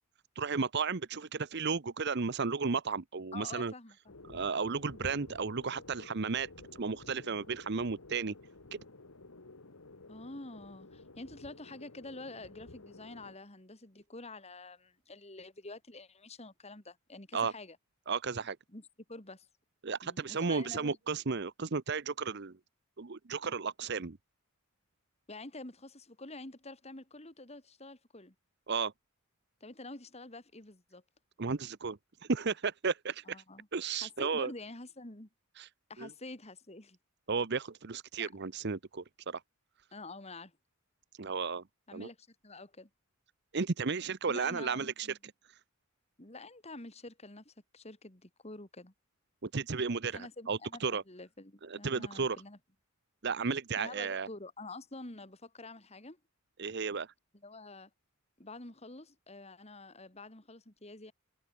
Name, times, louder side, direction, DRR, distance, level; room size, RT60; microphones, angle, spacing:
voice 1, 0.4-3.7 4.3-8.3 8.7-8.8 17.3-17.5 18.1-18.6 19.8-22.5 23.0-24.2 28.7-28.9 31.4-32.0 32.3-33.4 33.7-34.5 35.6-35.7 36.0-36.1 37.3-39.4 41.2-41.6 41.9-42.1 43.5-45.1 49.4-51.0 51.7-52.4 53.2-54.3 56.6-57.1, right 5 dB, 55° right, 0.8 m, -34 dB
voice 2, 3.3-4.1 10.1-17.8 18.7-19.5 20.0-21.0 25.3-28.3 29.6-31.0 33.2-33.7 34.0-35.3 35.9-37.0 38.2-38.3 39.9-40.5 41.9-42.9 44.3-45.2 46.2-48.9 50.1-52.6 53.8-56.2 57.4-57.9 58.4-61.1, left 2 dB, 30° left, 2.7 m, -48 dB
sound 1, 4.1-13.4, left 2 dB, 90° left, 1.9 m, -52 dB
head